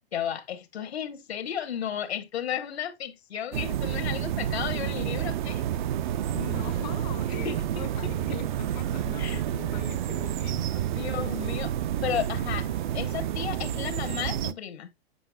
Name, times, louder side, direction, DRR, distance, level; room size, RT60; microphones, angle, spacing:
voice 1, 0.1-5.6 7.4-8.1 9.2-9.4 10.9-11.7 12.0-14.9, left 9 dB, 85° left, 1.1 m, -33 dB
sound 1, 3.5-14.5, right 11 dB, 50° right, 0.4 m, -29 dB
Wind instrument woodwind instrument, 6.0-14.2, right 8 dB, 75° right, 1.1 m, -49 dB
voice 2, 6.3-10.9, left 13 dB, 45° left, 0.5 m, -42 dB
7.8 x 5.5 x 2.3 m
hypercardioid pair, 145°, 31 cm